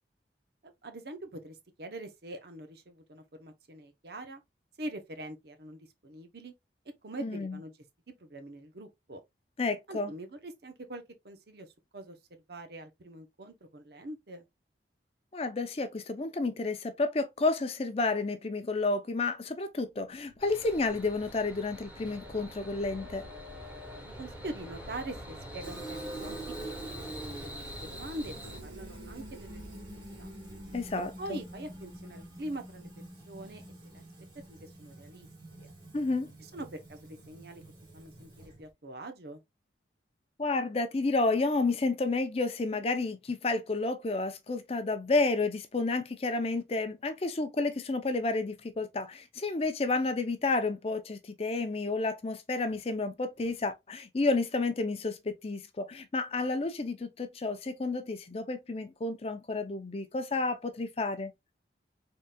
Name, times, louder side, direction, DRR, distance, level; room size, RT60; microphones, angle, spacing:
voice 1, 0.8-4.4 4.8-6.5 7.0-7.7 8.2-9.2 9.9-11.7 11.9-12.2 12.5-14.5 24.2-26.8 27.1-28.3 28.6-29.7 30.2-30.3 31.2-32.9 33.3-34.0 34.5-35.3 36.5-37.6 37.9-39.4, right 1 dB, 60° right, 0.8 m, -43 dB
voice 2, 7.2-7.6 9.6-10.1 15.3-23.2 30.7-31.4 35.9-36.3 40.4-61.3, left 3 dB, 30° left, 0.4 m, -31 dB
sound 1, 20.1-33.8, equal, 80° right, 0.9 m, -51 dB
sound 2, 20.4-28.6, equal, 10° right, 2.4 m, -45 dB
Fill (with liquid), 25.6-38.7, right 1 dB, 25° right, 1.3 m, -47 dB
4.0 x 3.7 x 2.2 m
head